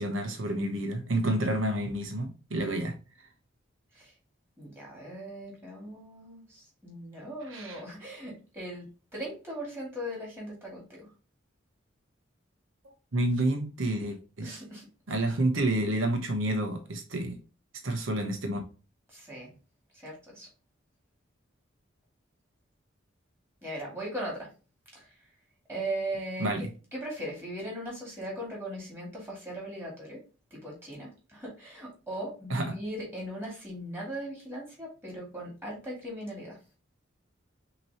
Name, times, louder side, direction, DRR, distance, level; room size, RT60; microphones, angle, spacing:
voice 1, 0.0-2.9 7.5-7.8 13.1-14.6 15.1-17.4 17.8-18.6 26.4-26.7 32.5-32.7, right 1 dB, 80° right, 1.0 m, -29 dB
voice 2, 4.6-8.8 9.1-11.1 14.4-15.3 19.1-19.5 20.0-20.5 23.6-24.5 24.9-25.0 25.7-26.5 26.9-30.2 30.5-36.6, right 1 dB, 10° right, 2.3 m, -39 dB
5.9 x 3.0 x 2.9 m
head